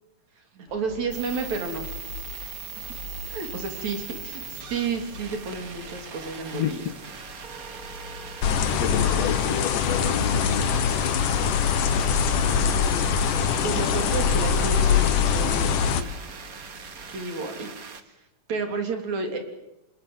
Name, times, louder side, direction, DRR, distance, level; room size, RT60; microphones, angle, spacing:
voice 1, 0.5-1.9 3.3-6.9 8.9-9.3 12.4-13.1 13.6-16.0 17.1-17.7 18.1-18.2 18.5-19.4, right 4 dB, 60° right, 5 dB, 4.6 m, -31 dB
sound 1, 0.7-17.2, left 2 dB, 30° left, 5.4 m, -45 dB
sound 2, 1.1-18.0, right 6 dB, 40° right, 1.3 m, -40 dB
voice 2, 6.5-7.0 8.8-10.8, left 10 dB, 65° left, 11 dB, 2.1 m, -30 dB
sound 3, 8.4-16.0, left 7 dB, 80° left, 3.0 m, -23 dB
27.5 x 22.0 x 8.1 m, 0.90 s
omnidirectional pair, 3.6 m